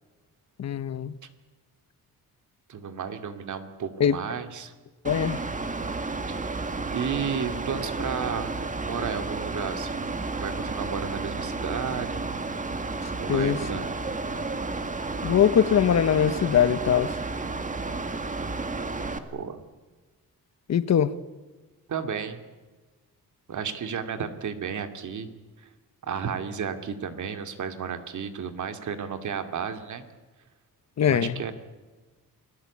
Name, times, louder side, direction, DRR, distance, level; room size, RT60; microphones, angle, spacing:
voice 1, 0.6-1.1 4.0-4.2 5.0-5.4 13.3-13.6 15.2-17.2 20.7-21.1 31.0-31.4, left 8 dB, 50° left, 1.0 m, -22 dB
voice 2, 2.7-4.7 6.3-6.4 6.9-8.5 8.8-12.2 13.2-13.9 19.3-19.6 21.9-22.4 23.5-25.3 25.6-25.7 26.0-30.0 31.1-31.5, right 7 dB, 55° right, 2.6 m, -33 dB
Mechanical fan, 5.0-19.2, right 3 dB, 20° right, 1.9 m, -32 dB
28.5 x 20.0 x 8.6 m
cardioid pair, 140°, 36 cm